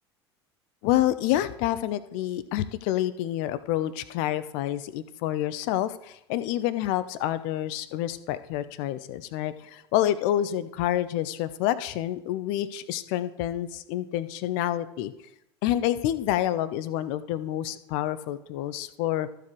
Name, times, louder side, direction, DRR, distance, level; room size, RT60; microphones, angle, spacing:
voice 1, 0.8-15.1 15.6-19.3, left 13 dB, 55° left, 14 dB, 0.7 m, -28 dB
14.0 x 4.9 x 4.7 m, 0.85 s
figure-of-eight pair, 75°, 14 cm